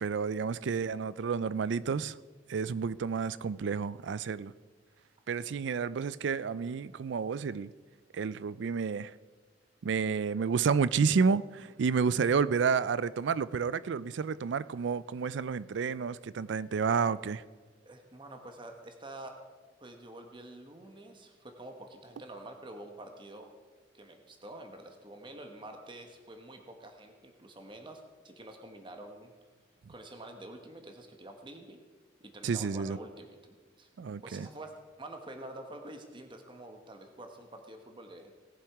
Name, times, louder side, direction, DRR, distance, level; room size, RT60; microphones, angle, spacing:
voice 1, 0.0-2.2 2.5-4.5 5.3-7.7 8.1-9.1 9.8-17.4 32.4-33.0 34.0-34.5, right 5 dB, 70° right, 0.4 m, -30 dB
voice 2, 17.8-19.4 19.8-23.5 23.9-29.3 29.9-31.8 32.2-33.9 34.2-38.3, right 1 dB, 25° right, 1.2 m, -47 dB
18.5 x 7.2 x 4.7 m
head